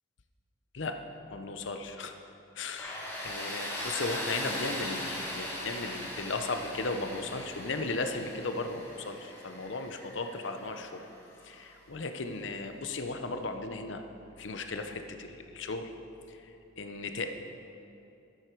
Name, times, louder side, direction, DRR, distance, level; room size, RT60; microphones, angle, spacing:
voice 1, 1.3-2.1 2.6-11.1 11.4-14.0 14.4-15.9 16.3-17.3, left 3 dB, 75° left, 6 dB, 0.8 m, -36 dB
Tools, 2.8-11.5, left 1 dB, 10° left, 2.0 m, -39 dB
14.0 x 7.9 x 4.6 m, 2.9 s
head